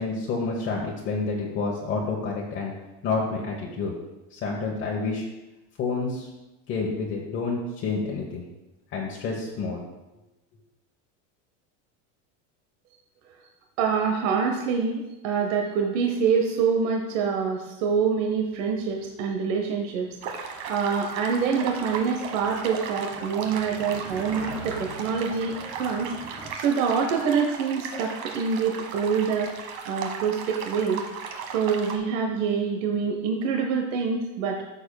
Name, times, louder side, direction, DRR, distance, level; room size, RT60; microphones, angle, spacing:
voice 1, 0.0-2.7 3.0-4.0 4.3-5.3 5.8-6.3 6.7-8.5 8.9-9.8, left 4 dB, 30° left, -2 dB, 1.0 m, -29 dB
voice 2, 13.8-31.0 31.5-34.7, right 6 dB, 85° right, 2 dB, 1.0 m, -26 dB
sound 1, 18.0-26.5, equal, 5° right, 1.1 m, -45 dB
sound 2, 20.2-32.0, right 5 dB, 60° right, 1.3 m, -36 dB
13.5 x 6.9 x 2.3 m, 1.0 s
cardioid pair, 165°, 37 cm